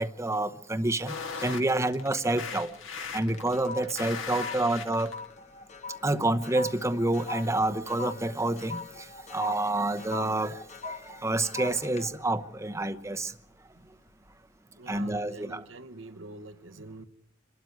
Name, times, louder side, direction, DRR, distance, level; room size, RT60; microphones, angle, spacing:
voice 1, 0.0-2.8 3.1-5.1 6.0-10.6 10.8-13.3 14.9-15.6, right 2 dB, 15° right, 0.9 m, -28 dB
sound 1, 1.1-5.3, left 6 dB, 80° left, 2.4 m, -38 dB
sound 2, 2.5-2.7 3.0-13.5 14.0-14.3, left 4 dB, 35° left, 1.0 m, -43 dB
voice 2, 14.8-17.0, right 2 dB, 75° right, 1.1 m, -45 dB
26.5 x 12.5 x 9.4 m
head